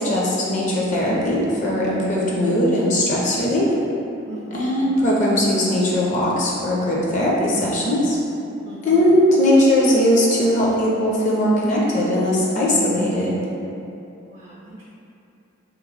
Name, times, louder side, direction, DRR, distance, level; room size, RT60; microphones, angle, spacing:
voice 1, 0.0-3.7 4.5-8.2 8.8-13.3, left 1 dB, 35° left, -5 dB, 0.5 m, -19 dB
voice 2, 4.2-4.8 8.7-9.0 14.3-14.8, right 1 dB, 25° right, -6 dB, 0.3 m, -38 dB
2.9 x 2.7 x 4.0 m, 2.8 s
head